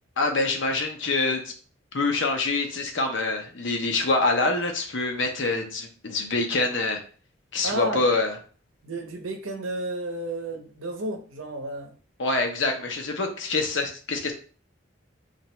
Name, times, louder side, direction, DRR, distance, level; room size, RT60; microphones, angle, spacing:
voice 1, 0.2-1.5 1.9-7.0 7.5-8.3 12.2-14.3, left 3 dB, 65° left, 0.8 m, -25 dB
voice 2, 7.6-8.0 8.8-11.9, right 2 dB, 80° right, 0.8 m, -32 dB
3.0 x 2.6 x 4.3 m
head